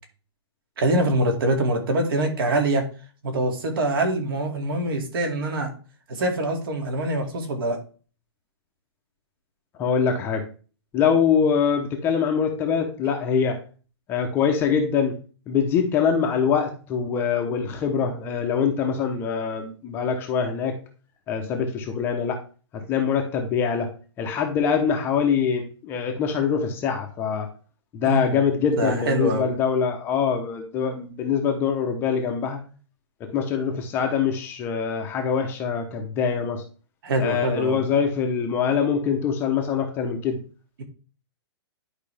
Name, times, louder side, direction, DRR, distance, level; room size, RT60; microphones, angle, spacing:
voice 1, 0.8-2.8 3.2-5.7 6.1-7.8 28.0-28.4 28.8-29.5 37.0-37.8, right 1 dB, 55° right, 4 dB, 2.3 m, -24 dB
voice 2, 9.8-10.4 10.9-13.6 14.1-15.1 15.5-20.8 21.3-22.4 22.7-23.9 24.2-27.5 27.9-32.6 33.3-36.6 37.2-40.4, left 6 dB, 15° left, 2 dB, 0.8 m, -24 dB
11.0 x 4.9 x 3.4 m, 0.37 s
hypercardioid pair, 165°, 14 cm